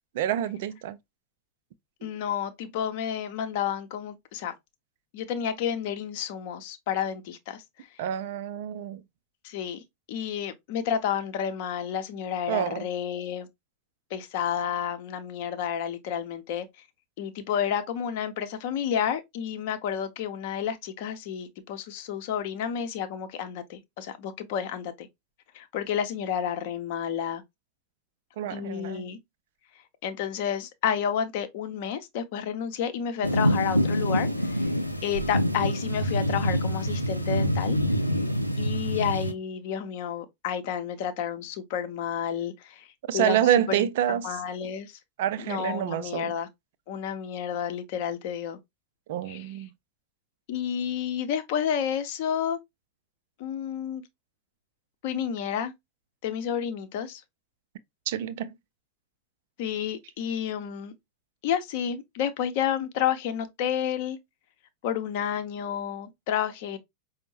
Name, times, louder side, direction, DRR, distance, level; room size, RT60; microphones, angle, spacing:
voice 1, 0.1-1.0 2.0-2.1 8.0-9.0 12.5-12.9 28.4-29.1 43.1-44.4 45.2-46.3 49.1-49.7 58.1-58.5, right 11 dB, 55° right, 0.4 m, -27 dB
voice 2, 2.0-4.5 5.1-7.9 9.4-9.8 10.1-13.5 14.1-16.7 17.2-25.1 25.5-27.4 28.5-29.2 30.0-34.7 35.0-37.8 38.6-42.9 43.1-44.9 45.4-46.5 46.9-48.6 49.3-49.5 50.5-52.6 53.4-54.0 55.0-55.7 56.2-57.2 59.6-60.9 61.4-64.2 64.8-66.8, left 8 dB, 50° left, 0.7 m, -30 dB
sound 1, 33.2-39.3, equal, 90° left, 0.4 m, -26 dB
5.1 x 2.1 x 3.1 m
figure-of-eight pair, 90°, 0 cm